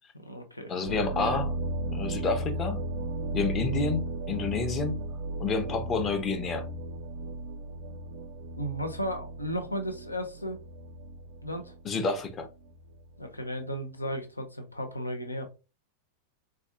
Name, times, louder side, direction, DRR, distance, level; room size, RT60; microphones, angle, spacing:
voice 1, 0.1-0.7 8.6-10.6 11.4-11.7 13.2-15.5, equal, 85° left, 0.6 m, -34 dB
voice 2, 0.7-1.5 1.9-2.8 3.3-5.0 5.4-6.7 11.8-12.5, left 4 dB, 25° left, 0.7 m, -29 dB
sound 1, 0.9-13.2, right 1 dB, 55° right, 0.5 m, -35 dB
4.3 x 2.3 x 2.7 m
figure-of-eight pair, 90°, 0 cm